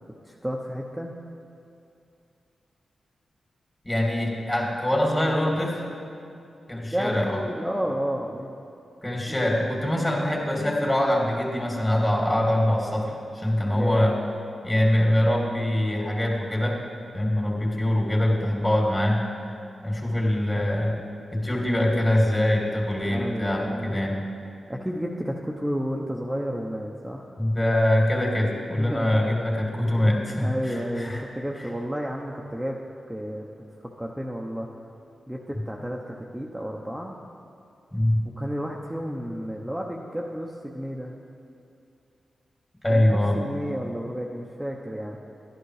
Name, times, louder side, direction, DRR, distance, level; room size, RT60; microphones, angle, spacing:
voice 1, 0.1-1.1 6.9-8.5 9.3-9.4 13.6-14.3 23.0-24.0 24.7-27.3 28.7-29.3 29.8-32.8 33.1-34.7 35.3-37.2 38.2-41.1 42.9-45.2, equal, 5° right, -2 dB, 1.0 m, -32 dB
voice 2, 3.8-5.8 6.7-7.4 9.0-14.2 14.6-16.8 17.1-19.2 19.8-21.0 21.3-24.2 27.4-31.2 37.9-38.2 42.8-43.4, left 1 dB, 25° left, -1 dB, 2.8 m, -23 dB
11.5 x 10.5 x 4.9 m, 2.6 s
cardioid pair, 45°, 0 cm